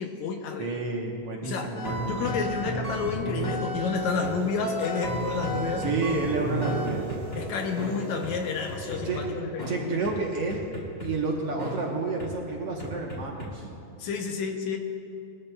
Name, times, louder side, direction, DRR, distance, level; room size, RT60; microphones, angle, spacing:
voice 1, 0.0-0.8 1.4-1.7 2.0-5.9 7.4-10.0 14.0-14.8, left 5 dB, 75° left, 3 dB, 2.0 m, -30 dB
voice 2, 0.6-2.4 5.8-7.1 9.0-9.2 9.7-10.6 11.0-13.7, right 3 dB, 65° right, -1 dB, 1.7 m, -30 dB
sound 1, 1.8-4.3 4.6-7.4 7.8-7.9 8.2-8.3 8.7-9.2 9.6-9.7 10.0-10.1 10.5-11.1 11.6-11.7 12.2-12.3 12.8-13.5, equal, 20° left, 2.1 m, -32 dB
sound 2, 3.9-9.5, right 2 dB, 5° left, 2.4 m, -39 dB
20.5 x 14.0 x 2.3 m, 2.6 s
omnidirectional pair, 3.7 m